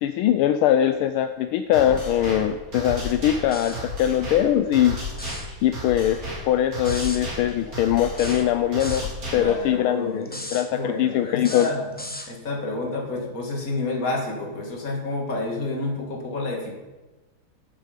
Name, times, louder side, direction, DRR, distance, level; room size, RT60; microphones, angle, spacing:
voice 1, 0.0-5.0 5.6-6.2 6.5-11.7, left 11 dB, 80° left, 8 dB, 1.4 m, -22 dB
sound 1, 1.7-9.7, left 1 dB, 40° right, 3.7 m, -33 dB
sound 2, 3.5-3.9 5.1-5.5 6.8-7.2 8.2-9.1 10.2-10.7 11.4-12.3, left 1 dB, 10° left, 0.5 m, -36 dB
voice 2, 9.3-10.4 10.7-11.9 12.3-16.7, left 2 dB, 40° left, 0 dB, 2.6 m, -29 dB
14.0 x 7.3 x 5.2 m, 1.2 s
omnidirectional pair, 2.4 m